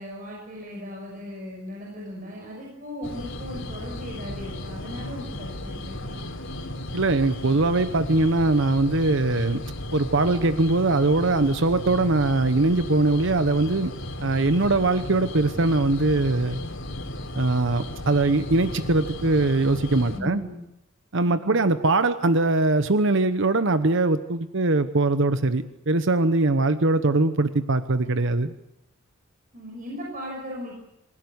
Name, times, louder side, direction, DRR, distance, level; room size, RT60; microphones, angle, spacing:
voice 1, 0.0-6.2 20.0-20.6 21.2-21.5 29.5-30.7, equal, 40° right, -1 dB, 6.3 m, -37 dB
sound 1, 3.0-20.2, left 1 dB, 65° left, 3.4 m, -35 dB
voice 2, 6.9-9.6 9.9-13.9 14.2-16.6 17.3-20.4 21.1-28.5, right 2 dB, 60° right, 11 dB, 1.0 m, -22 dB
27.5 x 17.0 x 8.1 m, 0.87 s
head